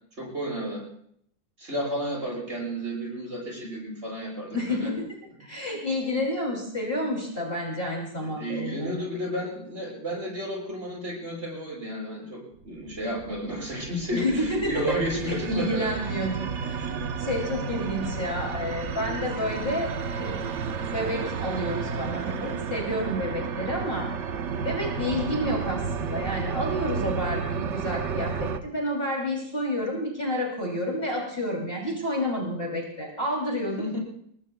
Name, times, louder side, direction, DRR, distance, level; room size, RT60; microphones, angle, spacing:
voice 1, 0.2-0.8 1.6-5.0 8.2-16.2 33.8-34.0, equal, 35° right, -4 dB, 8.0 m, -32 dB
voice 2, 4.5-5.1 5.4-9.0 14.1-15.0 15.3-20.4 20.8-24.1 24.6-33.9, left 1 dB, 30° left, -2 dB, 3.0 m, -30 dB
sound 1, 12.6-28.6, right 6 dB, 55° right, 0.8 m, -32 dB
28.5 x 20.5 x 2.3 m, 0.68 s
omnidirectional pair, 2.1 m